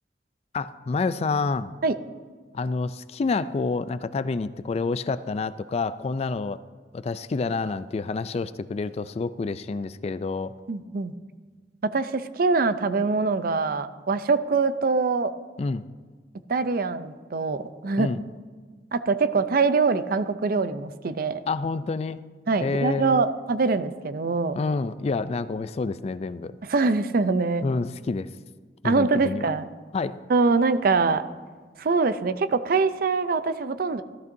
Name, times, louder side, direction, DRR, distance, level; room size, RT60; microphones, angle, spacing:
voice 1, 0.5-1.7 2.5-6.6 6.9-10.5 15.6-15.8 18.0-18.2 21.5-22.2 22.6-23.2 24.5-26.6 27.6-28.3 28.8-29.5 29.9-30.2, left 4 dB, 35° left, 14 dB, 0.3 m, -28 dB
voice 2, 10.7-11.1 11.8-15.3 16.5-18.1 18.9-21.4 22.5-24.6 26.7-27.7 28.8-29.7 30.3-31.2 31.8-34.0, right 4 dB, 55° right, 12 dB, 0.5 m, -23 dB
15.0 x 13.5 x 2.7 m, 1.5 s
head